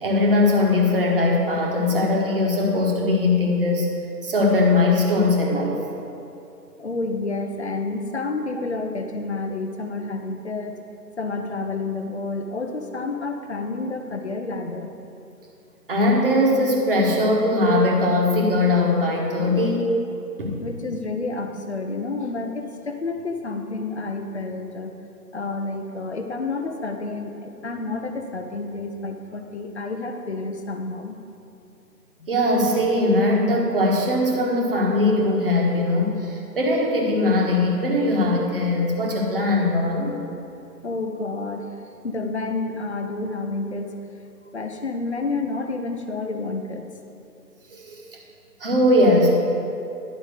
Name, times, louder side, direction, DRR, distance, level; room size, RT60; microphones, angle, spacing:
voice 1, 0.0-3.9 4.2-5.8 15.9-19.9 20.4-20.6 32.3-40.2 47.7-48.0 48.6-49.3, left 2 dB, 35° right, -1 dB, 1.4 m, -20 dB
voice 2, 6.8-10.8 11.2-14.9 20.6-24.9 25.3-31.2 32.2-32.3 40.8-41.7 42.0-43.9 44.4-46.9, left 3 dB, 40° left, 5 dB, 0.7 m, -29 dB
11.0 x 5.6 x 6.4 m, 2.7 s
figure-of-eight pair, 155°, 50 cm